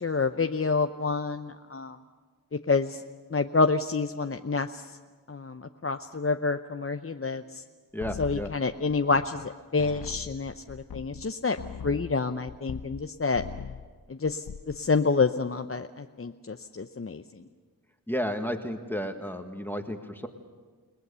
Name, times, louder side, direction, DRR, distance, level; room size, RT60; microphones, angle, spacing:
voice 1, 0.0-2.0 2.7-3.0 3.3-4.8 5.3-7.4 8.2-11.6 11.8-13.4 14.1-14.4 14.8-17.2, left 4 dB, 40° left, 7 dB, 0.7 m, -28 dB
voice 2, 7.9-8.5 18.1-20.3, equal, 5° left, 6 dB, 1.6 m, -32 dB
sound 1, 8.0-9.5 9.8-13.1 13.3-13.9 14.3-14.8, left 7 dB, 80° left, 0.8 m, -41 dB
29.5 x 19.0 x 6.9 m, 1.5 s
wide cardioid pair, 55°, 36 cm